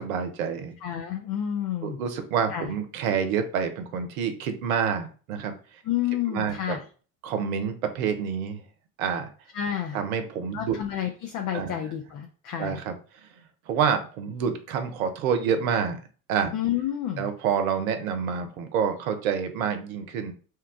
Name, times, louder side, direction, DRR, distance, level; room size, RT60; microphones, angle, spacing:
voice 1, 0.0-0.7 1.8-5.5 6.3-6.8 7.2-8.6 9.0-9.3 9.9-10.8 11.5-11.8 12.6-12.9 13.2-13.3 13.7-16.0 16.3-16.5 17.2-20.3, right 7 dB, 70° right, 7 dB, 0.7 m, -27 dB
voice 2, 0.8-2.0 2.5-2.7 5.8-6.8 9.5-10.0 10.5-12.8 16.5-17.3, left 10 dB, 45° left, 3 dB, 0.6 m, -30 dB
2.9 x 2.3 x 3.6 m, 0.38 s
figure-of-eight pair, 55°, 44 cm